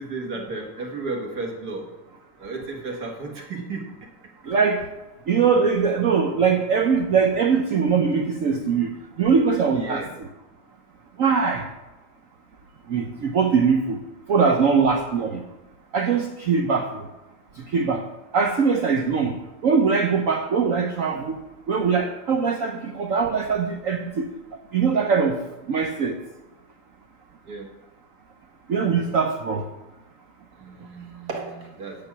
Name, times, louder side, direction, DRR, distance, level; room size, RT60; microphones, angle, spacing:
voice 1, 0.0-1.8 2.4-3.8 9.7-10.1 27.5-27.7 30.6-32.0, right 3 dB, 50° right, 1 dB, 1.9 m, -33 dB
voice 2, 4.5-4.8 5.3-10.3 11.2-11.6 12.9-14.0 14.3-15.4 15.9-16.9 17.7-18.0 18.3-19.3 19.6-21.4 21.7-24.3 24.7-25.4 25.7-26.1 28.7-29.6, right 5 dB, 90° right, 4 dB, 0.7 m, -21 dB
8.9 x 6.8 x 5.8 m, 1.0 s
omnidirectional pair, 2.3 m